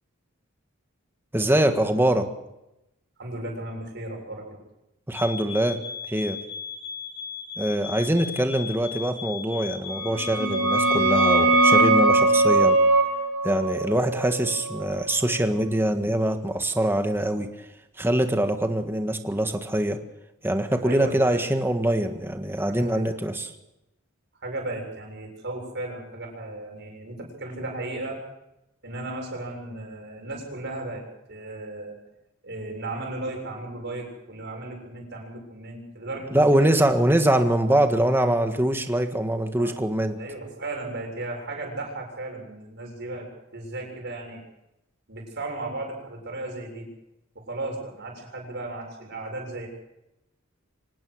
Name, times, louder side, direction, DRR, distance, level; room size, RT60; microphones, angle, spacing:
voice 1, 1.3-2.3 5.1-5.8 6.1-6.4 7.6-12.8 13.4-17.5 18.0-20.0 20.4-23.5 36.3-40.2, right 1 dB, 10° right, 6 dB, 1.6 m, -23 dB
voice 2, 3.2-4.6 20.8-21.5 22.6-23.0 24.4-28.2 28.8-32.0 32.4-36.9 37.3-37.5 39.6-39.7 40.2-44.4 45.1-46.9 47.4-49.7, right 2 dB, 55° right, 1 dB, 7.0 m, -35 dB
sound 1, 5.1-11.9, left 6 dB, 25° left, 4.4 m, -37 dB
sound 2, 10.0-15.5, right 2 dB, 85° right, 2.8 m, -21 dB
25.0 x 18.5 x 6.4 m, 0.90 s
head